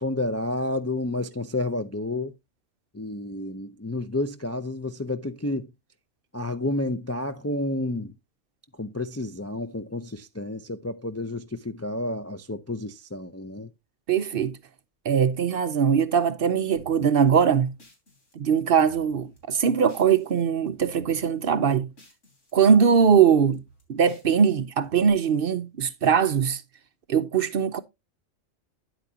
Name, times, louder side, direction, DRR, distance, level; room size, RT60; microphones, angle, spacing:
voice 1, 0.0-2.3 2.9-5.7 6.3-8.1 8.8-13.7, left 2 dB, 25° left, 0.4 m, -30 dB
voice 2, 14.1-14.6 15.0-17.8 18.4-21.9 22.5-23.6 23.9-26.6 27.1-27.8, right 7 dB, 55° right, 0.8 m, -21 dB
sound 1, 16.8-20.4 20.7-22.5 22.8-25.1, right 2 dB, 75° left, 4.0 m, -53 dB
9.8 x 8.5 x 2.8 m
omnidirectional pair, 1.3 m